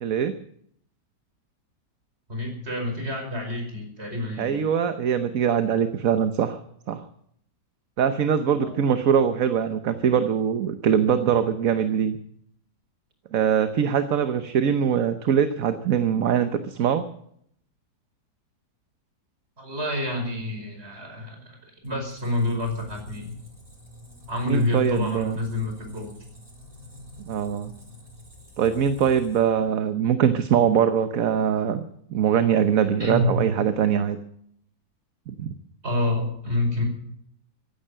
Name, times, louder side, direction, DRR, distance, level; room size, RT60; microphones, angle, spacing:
voice 1, 0.0-0.3 4.4-6.6 6.9-7.0 8.0-12.2 13.3-17.0 24.5-25.4 27.2-27.7 28.6-31.8 32.1-34.2 35.3-35.5, right 8 dB, 60° right, 9 dB, 1.3 m, -22 dB
voice 2, 2.3-4.6 8.6-8.7 9.4-9.5 19.6-23.4 24.3-26.1 33.0-33.4 35.8-36.8, left 1 dB, 35° right, 2 dB, 5.5 m, -28 dB
Squeak, 21.8-29.7, left 1 dB, 20° right, 3.6 m, -48 dB
15.5 x 11.0 x 7.5 m, 0.67 s
omnidirectional pair, 1.8 m